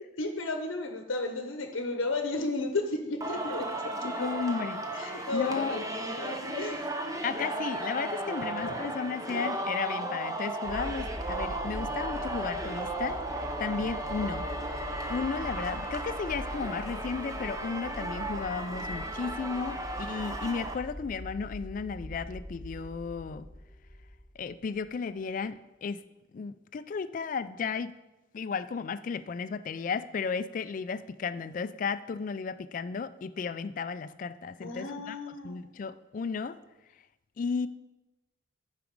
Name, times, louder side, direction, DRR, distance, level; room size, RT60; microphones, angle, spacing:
voice 1, 0.2-3.7 4.0-4.3 5.0-6.9 8.6-8.8 34.6-35.6, left 2 dB, 80° left, 6 dB, 0.8 m, -33 dB
Singing, 3.2-20.7, right 1 dB, 15° right, 0.7 m, -35 dB
voice 2, 4.0-5.8 7.2-14.5 15.1-23.5 24.4-26.0 26.3-27.9 28.3-36.6 37.4-37.7, left 5 dB, 40° left, 13 dB, 0.3 m, -34 dB
sound 1, 10.6-24.9, equal, 5° left, 2.9 m, -43 dB
9.1 x 4.9 x 5.2 m, 0.98 s
head